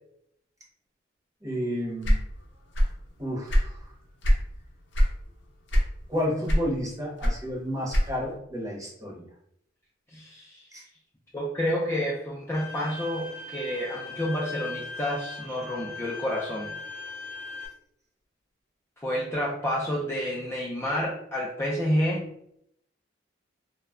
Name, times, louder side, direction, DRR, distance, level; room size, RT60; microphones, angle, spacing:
voice 1, 1.4-2.2 3.2-3.9 6.1-9.3 10.7-10.8, equal, 20° right, -3 dB, 0.7 m, -31 dB
sound 1, 2.0-3.0 3.3-4.5 4.9-5.2 5.7-6.1 6.5-8.4, equal, 65° left, 0.6 m, -22 dB
voice 2, 10.1-10.7 11.3-16.7 19.0-22.3, equal, 15° left, -5 dB, 0.4 m, -29 dB
Bowed string instrument, 12.5-17.7, left 3 dB, 85° right, 0.5 m, -39 dB
2.1 x 2.0 x 3.5 m, 0.71 s
head